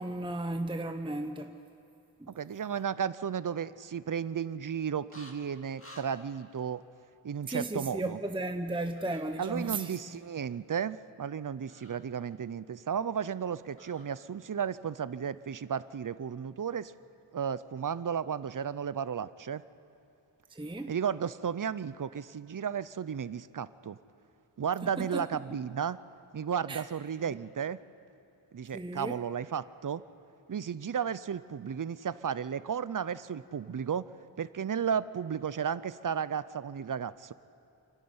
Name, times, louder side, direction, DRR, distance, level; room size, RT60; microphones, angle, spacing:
voice 1, 0.0-1.5 2.2-2.3 7.5-10.0 20.5-20.9 24.8-25.2 26.7-26.8 27.3-27.4 28.7-29.2, right 2 dB, 10° right, 7 dB, 0.8 m, -35 dB
voice 2, 2.3-6.8 7.2-8.2 9.4-16.9 17.3-19.6 20.9-24.0 24.6-26.0 26.3-27.8 28.5-30.0 30.5-34.1 34.4-37.3, right 7 dB, 45° right, 17 dB, 0.6 m, -34 dB
sound 1, 5.1-5.3 5.8-6.1 8.9-9.2 11.6-12.0 13.8-14.1, left 1 dB, 25° left, 2.6 m, -51 dB
27.5 x 12.0 x 9.6 m, 2.6 s
wide cardioid pair, 65°, 47 cm